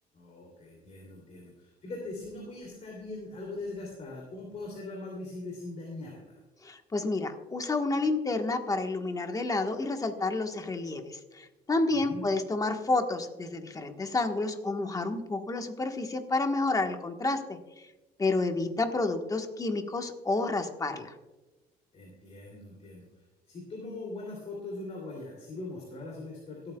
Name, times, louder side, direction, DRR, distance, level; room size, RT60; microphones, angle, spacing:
voice 1, 0.1-6.4 11.9-12.3 21.9-23.1 23.5-26.8, left 2 dB, 40° left, -2 dB, 2.9 m, -41 dB
voice 2, 6.6-17.6 18.2-21.1, left 3 dB, 20° left, 5 dB, 1.3 m, -30 dB
26.5 x 8.9 x 2.3 m, 1.1 s
cardioid pair, 110°, 17 cm